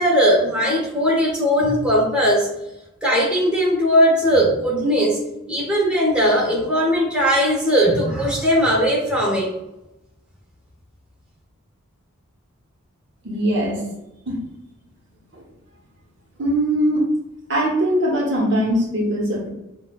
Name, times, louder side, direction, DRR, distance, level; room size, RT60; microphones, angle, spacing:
voice 1, 0.0-2.5 3.0-5.2 5.5-9.5, equal, 5° right, -4 dB, 0.8 m, -18 dB
voice 2, 13.2-13.8 14.3-14.4 15.3-15.4 16.4-17.1 17.5-19.5, equal, 55° right, -1 dB, 0.9 m, -21 dB
6.0 x 2.3 x 2.3 m, 0.91 s
head